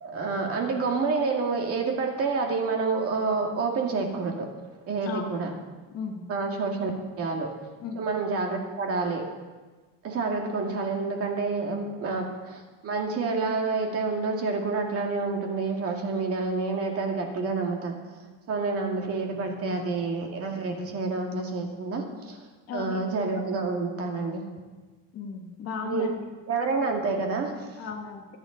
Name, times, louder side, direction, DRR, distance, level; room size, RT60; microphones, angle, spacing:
voice 1, 0.0-4.5 4.8-5.5 6.3-6.9 7.2-7.5 8.0-9.3 10.0-18.0 18.5-22.4 22.7-24.5 25.8-26.1 26.5-27.7, right 4 dB, 40° right, 2 dB, 2.1 m, -28 dB
voice 2, 5.1-5.5 5.9-6.2 7.8-8.0 22.7-23.0 25.1-26.2 27.8-28.4, left 5 dB, 45° left, 2 dB, 2.0 m, -35 dB
25.0 x 8.8 x 3.9 m, 1.3 s
cardioid pair, 160°, 35 cm